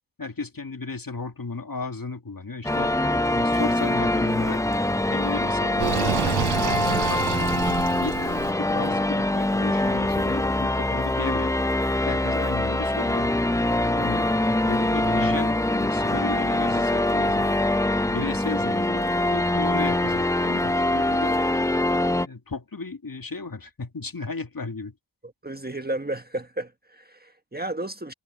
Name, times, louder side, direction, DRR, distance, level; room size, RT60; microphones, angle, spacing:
voice 1, 0.2-2.9 3.3-4.6 5.1-7.5 8.0-11.5 12.0-13.4 13.8-14.3 14.7-17.6 18.1-21.4 22.1-24.9, left 3 dB, 45° left, 2.2 m, -34 dB
sound 1, 2.6-22.3, left 1 dB, 5° left, 0.5 m, -24 dB
Sink (filling or washing), 5.8-8.5, right 11 dB, 55° right, 0.5 m, -28 dB
voice 2, 25.4-28.1, right 1 dB, 20° right, 1.5 m, -33 dB
cardioid pair, 50°, 48 cm